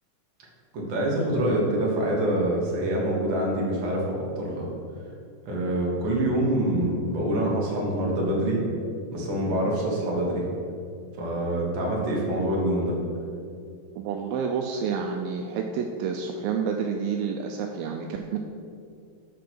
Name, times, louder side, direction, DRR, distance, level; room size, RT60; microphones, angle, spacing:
voice 1, 0.7-4.7 5.4-8.6 9.1-10.5 11.2-13.0, right 1 dB, 55° right, -3 dB, 1.3 m, -25 dB
voice 2, 14.0-18.4, right 6 dB, 85° right, 2 dB, 2.3 m, -29 dB
7.5 x 5.0 x 6.1 m, 2.4 s
omnidirectional pair, 4.3 m